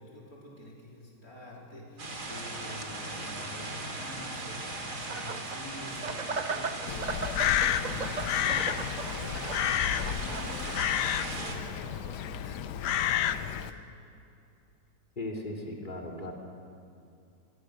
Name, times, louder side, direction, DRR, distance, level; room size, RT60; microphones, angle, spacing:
voice 1, 0.0-13.8, left 1 dB, 55° left, -4 dB, 4.2 m, -46 dB
sound 1, 2.0-11.5, right 2 dB, 70° right, 3.3 m, -39 dB
sound 2, 5.1-5.6 6.0-10.8, right 4 dB, 40° right, 0.7 m, -37 dB
Crow, 6.9-13.7, left 10 dB, 75° left, 1.3 m, -30 dB
voice 2, 15.2-16.3, left 1 dB, 25° left, 0 dB, 3.0 m, -37 dB
26.0 x 22.0 x 6.5 m, 2.5 s
omnidirectional pair, 1.8 m